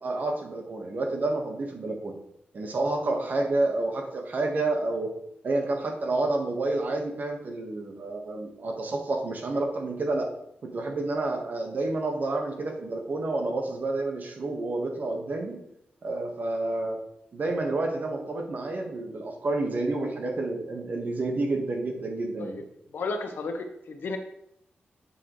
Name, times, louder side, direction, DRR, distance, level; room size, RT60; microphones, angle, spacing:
voice 1, 0.0-2.1 2.5-5.1 5.4-10.3 10.6-15.5 16.0-17.0 17.3-22.6, right 2 dB, 55° right, 2 dB, 1.5 m, -29 dB
voice 2, 22.9-24.2, left 3 dB, 80° left, 6 dB, 1.0 m, -33 dB
7.9 x 7.1 x 3.2 m, 0.77 s
wide cardioid pair, 125°, 4 cm